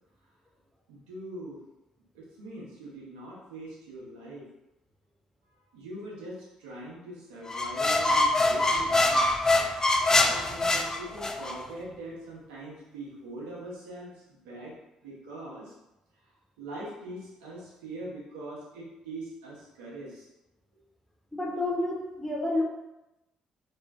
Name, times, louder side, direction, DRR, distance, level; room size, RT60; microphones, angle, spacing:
voice 1, 0.9-1.6 2.1-4.5 5.7-9.3 10.1-14.8 15.0-15.7 16.6-20.3 20.7-20.8, right 1 dB, 75° right, -6 dB, 1.0 m, -42 dB
sound 1, 7.5-11.6, left 2 dB, 20° left, 0.4 m, -24 dB
voice 2, 21.3-22.6, left 2 dB, 5° left, -2 dB, 0.8 m, -29 dB
3.0 x 2.2 x 3.6 m, 0.94 s
hypercardioid pair, 45°, 3 cm